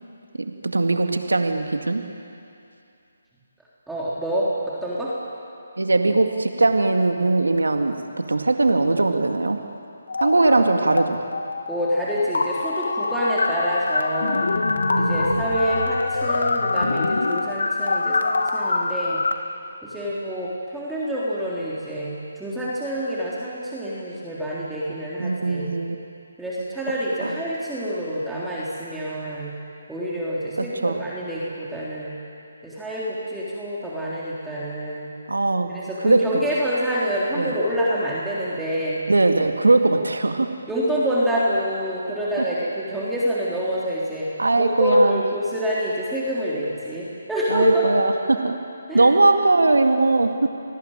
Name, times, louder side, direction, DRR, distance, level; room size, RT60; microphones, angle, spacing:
voice 1, 0.6-2.0 5.8-7.9 8.3-9.6 10.2-11.2 14.8-15.5 25.2-26.0 27.2-27.4 30.8-31.0 35.3-35.7 36.0-36.4 37.4-37.5 39.1-40.5 44.4-45.2 47.5-48.6 48.9-50.3, right 2 dB, 90° right, 5 dB, 2.2 m, -20 dB
voice 2, 3.9-5.1 10.4-10.9 11.7-14.5 15.0-19.2 19.8-25.7 26.4-29.5 29.9-32.1 32.6-35.1 35.7-39.0 40.7-44.3 44.6-47.9 48.9-49.1, equal, 5° right, -8 dB, 3.7 m, -26 dB
sound 1, 10.1-11.0 11.3-19.3, left 3 dB, 75° left, 2.1 m, -24 dB
29.0 x 19.5 x 9.1 m, 2.6 s
figure-of-eight pair, 155°, 0 cm